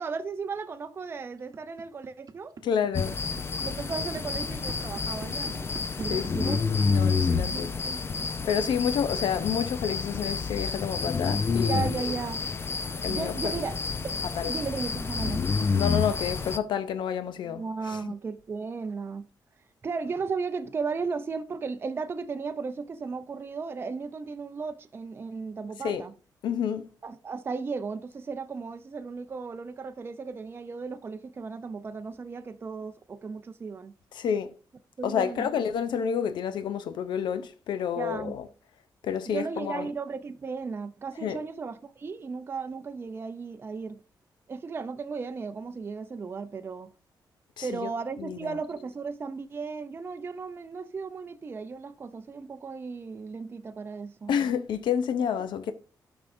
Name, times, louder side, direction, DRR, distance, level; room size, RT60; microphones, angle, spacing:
voice 1, 0.0-2.5 3.6-5.7 6.0-7.0 7.5-8.3 11.6-12.4 13.1-13.8 14.0-14.2 14.5-15.4 17.5-19.3 19.8-26.1 27.0-33.9 35.0-35.5 38.0-38.3 39.3-44.0 44.5-46.9 47.6-54.3, right 4 dB, 30° right, 0.5 m, -35 dB
sound 1, 1.4-7.6, right 5 dB, 50° right, 0.9 m, -43 dB
voice 2, 2.6-3.2 6.1-6.6 6.9-7.7 8.4-12.1 13.0-13.5 14.3-14.5 15.7-18.1 25.8-26.0 26.4-26.9 34.1-34.6 35.0-38.5 39.0-39.9 41.2-41.4 47.6-47.9 48.2-48.6 54.3-55.7, left 8 dB, 90° left, 0.5 m, -29 dB
sound 2, 2.9-16.6, left 5 dB, 30° left, 0.5 m, -29 dB
11.5 x 6.0 x 2.6 m
wide cardioid pair, 135°, 8 cm